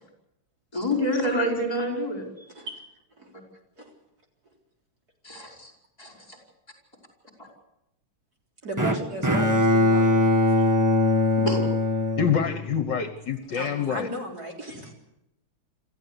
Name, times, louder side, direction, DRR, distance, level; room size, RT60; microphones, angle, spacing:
voice 1, 0.7-2.3 5.2-5.7 6.0-6.4 11.5-11.6, equal, 15° left, 1 dB, 5.4 m, -27 dB
voice 2, 2.5-2.8 3.2-3.3 3.8-3.9 8.6-10.4 13.5-14.9, right 1 dB, 45° right, 0 dB, 4.3 m, -36 dB
Bowed string instrument, 8.8-13.0, left 2 dB, 10° right, 1.0 m, -22 dB
voice 3, 12.2-14.1, left 7 dB, 60° left, 9 dB, 1.8 m, -26 dB
27.0 x 14.5 x 8.2 m, 0.85 s
omnidirectional pair, 2.3 m